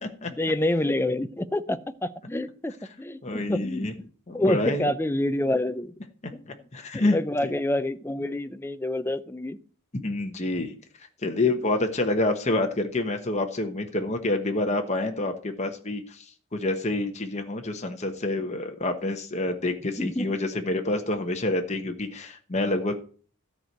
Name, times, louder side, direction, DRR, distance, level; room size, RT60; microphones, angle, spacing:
voice 1, 0.3-2.7 3.0-3.9 4.3-6.0 6.3-6.4 6.9-9.6 20.0-20.3, left 1 dB, 10° left, 12 dB, 0.5 m, -27 dB
voice 2, 3.2-3.9 4.3-4.9 6.4-7.2 10.0-23.0, left 2 dB, 30° left, 4 dB, 1.1 m, -28 dB
13.0 x 4.6 x 7.9 m, 0.42 s
head